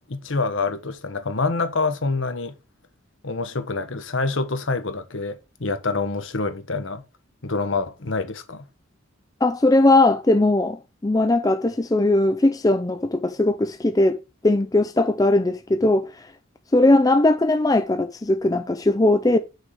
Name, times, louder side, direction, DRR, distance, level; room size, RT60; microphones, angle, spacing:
voice 1, 0.1-2.6 3.2-7.0 7.4-8.7, left 3 dB, 70° left, 1.2 m, -26 dB
voice 2, 9.4-14.2 14.4-16.3 16.7-19.4, left 2 dB, 20° left, 0.4 m, -19 dB
6.4 x 4.8 x 6.6 m
head